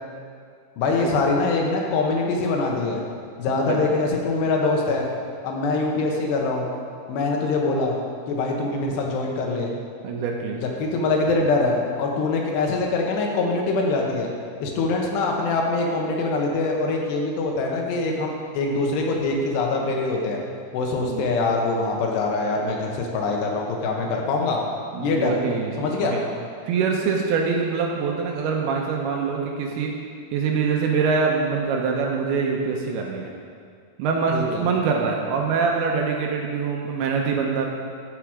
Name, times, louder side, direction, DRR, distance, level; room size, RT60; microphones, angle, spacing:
voice 1, 0.8-3.0 3.4-5.1 5.4-6.7 7.1-8.0 8.3-9.7 10.6-14.3 14.6-20.4 20.7-24.6 25.0-25.4 25.8-26.2 34.3-34.6, left 3 dB, 85° left, 0 dB, 3.3 m, -23 dB
voice 2, 3.5-3.8 10.0-10.6 21.0-21.3 24.0-24.1 24.9-26.2 26.7-29.9 30.3-33.3 34.0-37.7, right 5 dB, 75° right, 0 dB, 2.6 m, -24 dB
13.5 x 6.1 x 4.9 m, 2.2 s
omnidirectional pair, 4.8 m